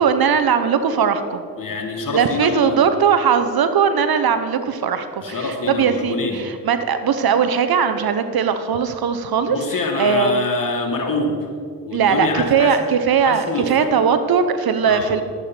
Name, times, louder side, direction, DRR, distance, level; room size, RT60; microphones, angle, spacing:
voice 1, 0.0-1.4 2.1-10.3 11.9-15.2, right 6 dB, 60° right, 10 dB, 0.9 m, -19 dB
voice 2, 1.6-2.8 5.2-6.5 9.5-11.5 11.8-12.8 13.2-13.9 14.8-15.1, left 3 dB, 50° left, 2 dB, 2.0 m, -25 dB
11.5 x 8.4 x 4.4 m, 2.1 s
supercardioid pair, 50°, 42 cm